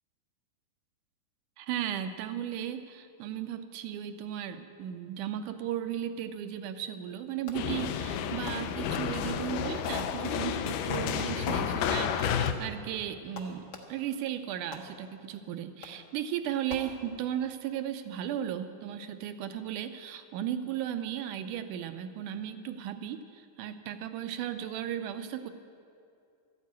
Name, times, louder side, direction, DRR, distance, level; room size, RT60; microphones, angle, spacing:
voice 1, 1.6-25.5, right 10 dB, 75° right, 10 dB, 1.9 m, -36 dB
sound 1, 7.5-12.5, left 8 dB, 80° left, 2.2 m, -31 dB
Fireworks, 7.5-7.9 8.5-9.5 9.8-10.6 10.9-11.6 12.2-14.2 14.7-15.3 15.8-16.2 16.7-17.4, left 3 dB, 60° left, 1.1 m, -47 dB
13.5 x 9.6 x 9.5 m, 2.5 s
omnidirectional pair, 4.1 m